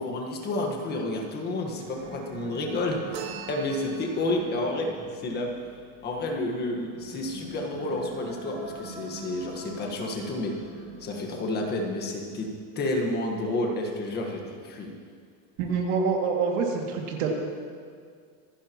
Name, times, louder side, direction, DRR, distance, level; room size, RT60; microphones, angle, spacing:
voice 1, 0.0-5.5 6.0-10.5 11.0-12.5 12.7-14.9, left 2 dB, 20° left, 1 dB, 1.5 m, -30 dB
sound 1, 1.6-11.4, right 3 dB, 20° right, 2.7 m, -44 dB
sound 2, 3.1-4.4, right 7 dB, 85° right, 2.7 m, -40 dB
voice 2, 15.6-17.4, right 5 dB, 60° right, 0 dB, 2.5 m, -26 dB
26.0 x 10.5 x 3.0 m, 2.1 s
supercardioid pair, 175°, 45 cm